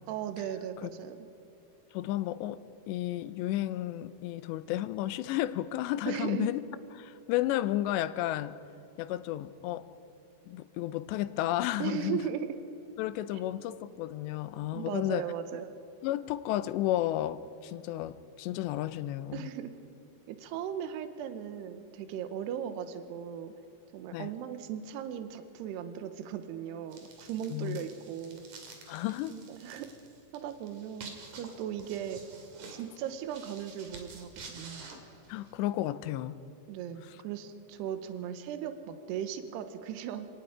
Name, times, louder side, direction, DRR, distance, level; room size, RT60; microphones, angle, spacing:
voice 1, 0.1-1.2 6.1-6.5 11.8-12.5 14.7-15.7 19.3-19.8 20.3-23.5 23.9-28.4 29.3-29.9 30.3-32.2 32.7-34.9 36.7-40.3, right 9 dB, 80° right, 9 dB, 3.0 m, -37 dB
voice 2, 1.9-2.6 2.9-6.6 7.0-8.6 9.0-9.9 10.5-12.3 13.0-15.2 16.0-19.5 24.1-24.3 27.5-27.8 28.9-29.4 35.3-36.4, left 14 dB, 85° left, 14 dB, 2.9 m, -32 dB
sound 1, 26.9-35.7, right 4 dB, 50° right, 3.5 m, -50 dB
28.5 x 18.5 x 4.9 m, 2.8 s
omnidirectional pair, 5.0 m